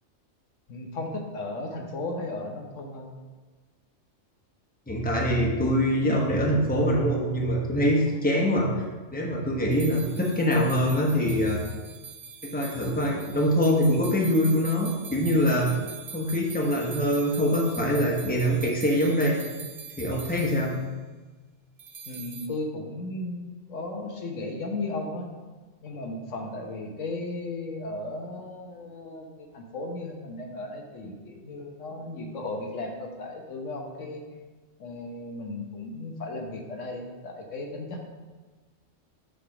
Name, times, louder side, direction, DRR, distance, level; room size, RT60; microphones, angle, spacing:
voice 1, 0.7-3.1 22.1-25.3 25.8-34.2 34.8-38.1, left 2 dB, 80° left, 2 dB, 1.3 m, -35 dB
voice 2, 4.9-8.7 9.1-11.6 12.4-15.7 16.1-19.4 20.0-20.7, equal, 10° left, -2 dB, 1.0 m, -24 dB
sound 1, 9.7-20.8 21.8-22.5, right 6 dB, 50° right, 0.4 m, -43 dB
7.6 x 3.4 x 6.1 m, 1.3 s
omnidirectional pair, 1.3 m